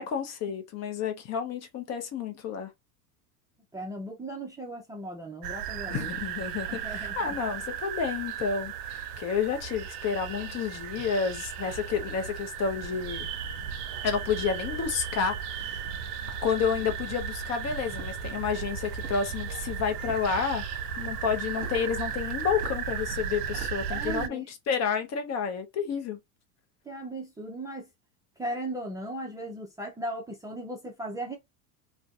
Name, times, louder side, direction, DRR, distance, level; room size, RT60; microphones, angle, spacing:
voice 1, 0.0-2.7 5.9-13.3 14.0-15.9 16.4-20.7 21.0-26.2, left 6 dB, 35° left, 0.6 m, -30 dB
voice 2, 3.7-6.1 6.7-7.4 23.9-24.5 26.9-27.9 28.4-31.4, right 1 dB, 10° right, 0.5 m, -37 dB
sound 1, 5.4-24.3, right 7 dB, 75° right, 0.5 m, -35 dB
sound 2, 17.9-18.3 18.9-19.4 20.0-20.4 21.6-21.8 22.6-22.8 23.5-23.8, right 3 dB, 35° right, 1.1 m, -43 dB
2.5 x 2.2 x 2.3 m
hypercardioid pair, 100°, 46 cm